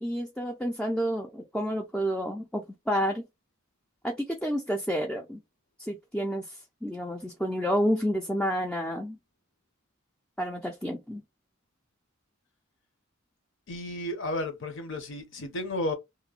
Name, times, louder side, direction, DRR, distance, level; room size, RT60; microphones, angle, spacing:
voice 1, 0.0-3.2 4.0-5.4 5.8-9.2 10.4-11.2, equal, 5° left, 0.4 m, -30 dB
voice 2, 13.7-15.9, left 1 dB, 65° left, 0.8 m, -33 dB
2.9 x 2.1 x 2.4 m
head